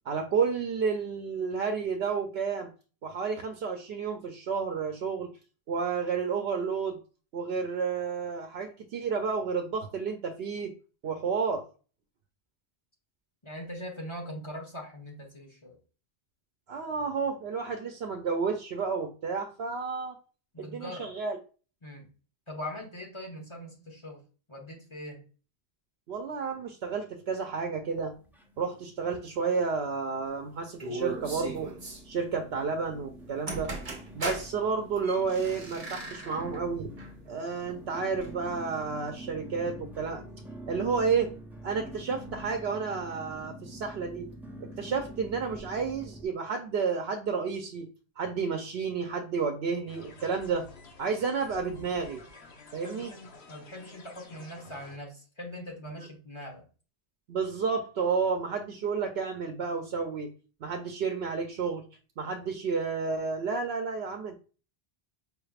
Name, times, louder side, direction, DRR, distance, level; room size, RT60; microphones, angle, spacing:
voice 1, 0.1-2.7 3.0-5.3 5.7-7.0 7.3-10.7 11.0-11.6 16.7-20.2 20.6-21.4 26.1-28.1 28.6-31.7 32.0-33.7 34.1-36.9 37.3-40.2 40.7-41.3 41.6-44.3 44.6-47.9 48.2-50.7 51.0-52.2 52.7-53.1 57.3-60.3 60.6-61.8 62.2-64.4, right 5 dB, 75° right, 4 dB, 0.8 m, -31 dB
voice 2, 13.4-15.8 20.5-21.1 21.8-22.1 22.5-24.2 24.5-25.2 52.8-56.7, equal, 30° left, 1 dB, 1.2 m, -41 dB
sound 1, 27.9-28.9 29.1-29.8 30.3-30.4 31.1-46.3, right 1 dB, 5° right, 0.3 m, -46 dB
sound 2, 30.8-32.0 33.2-33.3 33.5-34.5 35.0-36.6 37.0-37.1 38.2-38.3, right 2 dB, 40° right, 0.9 m, -38 dB
sound 3, 49.9-55.0, left 3 dB, 80° left, 1.1 m, -51 dB
5.2 x 3.3 x 2.3 m, 0.36 s
omnidirectional pair, 1.1 m